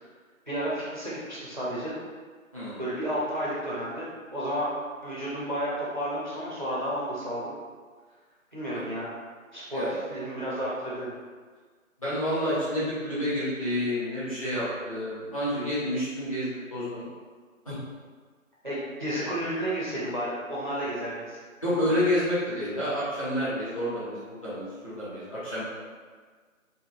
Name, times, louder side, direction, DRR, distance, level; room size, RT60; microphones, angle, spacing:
voice 1, 0.5-1.9 2.8-4.7 5.0-7.5 8.5-9.1 9.5-11.1 18.6-21.4, equal, 35° right, -8 dB, 0.5 m, -32 dB
voice 2, 12.0-17.0 17.6-17.8 21.6-25.6, equal, 25° left, -12 dB, 0.9 m, -29 dB
3.9 x 2.2 x 2.7 m, 1.5 s
figure-of-eight pair, 160°, 41 cm